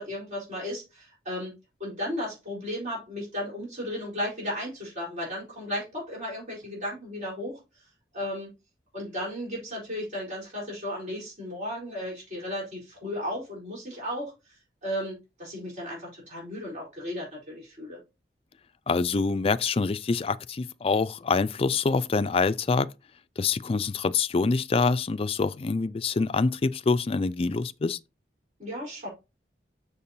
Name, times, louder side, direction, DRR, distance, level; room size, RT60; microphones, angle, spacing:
voice 1, 0.0-1.5 1.8-7.6 8.1-8.5 8.9-14.3 14.8-18.0 28.6-29.1, left 1 dB, 40° right, 4.1 m, -34 dB
voice 2, 18.9-22.9 23.4-28.0, left 4 dB, 35° left, 0.3 m, -25 dB
6.9 x 6.5 x 2.7 m
head